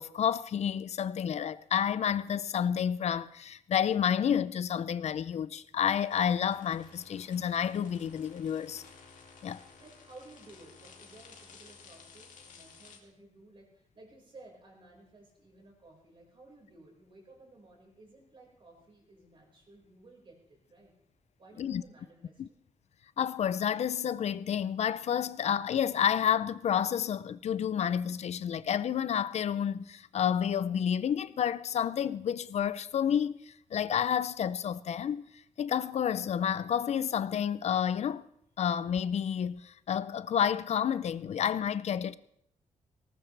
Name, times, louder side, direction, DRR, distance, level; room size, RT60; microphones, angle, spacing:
voice 1, 0.0-8.8 9.4-9.6 21.6-21.8 22.4-22.5 23.2-35.2 35.6-38.2 38.6-42.2, left 8 dB, 60° left, 0.5 m, -30 dB
sound 1, 5.8-13.0, left 5 dB, 85° left, 2.5 m, -55 dB
voice 2, 9.8-20.9 21.4-22.5, right 2 dB, 40° right, 5.1 m, -56 dB
19.0 x 18.5 x 3.3 m
wide cardioid pair, 150°, 13 cm